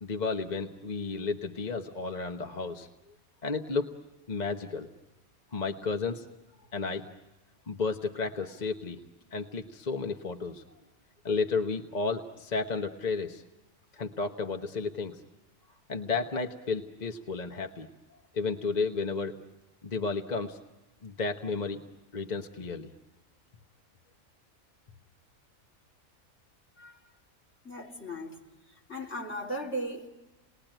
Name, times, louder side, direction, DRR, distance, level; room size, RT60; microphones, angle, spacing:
voice 1, 0.0-2.9 3.4-3.9 4.3-4.9 5.5-6.3 6.7-7.1 7.7-9.0 9.3-10.6 11.2-13.4 13.9-15.2 15.9-17.9 18.3-19.3 19.8-20.6 21.0-21.8 22.1-22.9, left 4 dB, 35° left, 1.1 m, -32 dB
voice 2, 27.6-28.4 28.9-30.1, equal, 50° left, 3.7 m, -36 dB
29.0 x 20.5 x 9.0 m
omnidirectional pair, 1.5 m